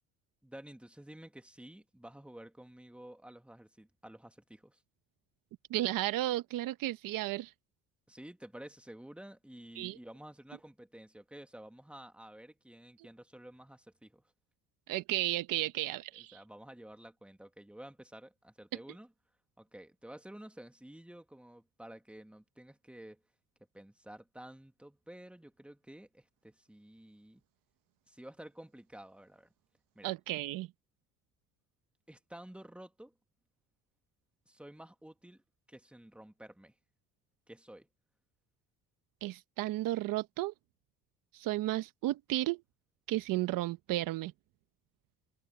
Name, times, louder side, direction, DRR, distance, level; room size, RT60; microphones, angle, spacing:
voice 1, 0.4-4.8 8.1-14.2 16.1-19.1 19.6-23.2 23.7-27.4 28.1-29.5 29.9-30.1 32.1-33.1 34.5-36.7 37.5-37.9, right 1 dB, 5° right, 2.2 m, -51 dB
voice 2, 5.7-7.5 9.8-10.0 14.9-16.4 30.0-30.7 39.2-40.5 41.3-42.6 43.1-44.3, right 16 dB, 70° right, 1.2 m, -33 dB
supercardioid pair, 75°, 34 cm